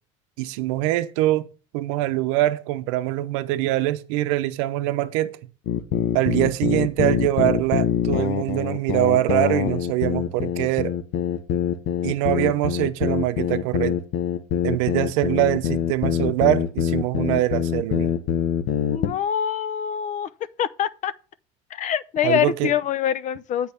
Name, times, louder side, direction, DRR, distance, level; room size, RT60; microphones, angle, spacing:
voice 1, 0.4-1.5 1.7-5.4 6.1-10.9 12.0-14.0 14.6-18.1 22.2-22.7, right 15 dB, 80° right, 0.7 m, -23 dB
sound 1, 5.7-19.2, left 9 dB, 70° left, 1.1 m, -24 dB
voice 2, 18.9-20.3 20.6-21.1 21.7-23.7, left 9 dB, 50° left, 0.6 m, -24 dB
8.5 x 4.7 x 6.8 m
supercardioid pair, 85°, 17 cm